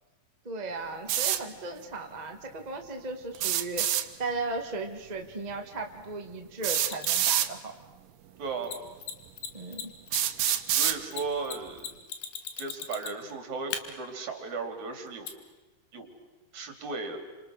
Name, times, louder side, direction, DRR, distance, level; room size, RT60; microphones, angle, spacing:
voice 1, 0.4-3.9 4.2-7.7 9.5-9.9, right 3 dB, 25° right, 3 dB, 0.9 m, -36 dB
sound 1, 1.1-1.4 3.4-4.1 5.5-5.6 6.6-7.5 8.5-8.6 9.3-9.4 10.1-11.0, right 11 dB, 80° right, 2.8 m, -26 dB
Mechanisms, 6.7-7.4 8.6-8.7 9.0-9.1 9.4-9.5 9.7-13.3 13.7-13.8 15.3-15.4, left 8 dB, 85° left, 3.5 m, -37 dB
voice 2, 8.4-8.8 10.7-11.9 12.6-15.3 15.9-16.1 16.5-17.2, right 4 dB, 55° right, 5 dB, 4.3 m, -36 dB
30.0 x 26.5 x 6.5 m, 1.1 s
omnidirectional pair, 4.0 m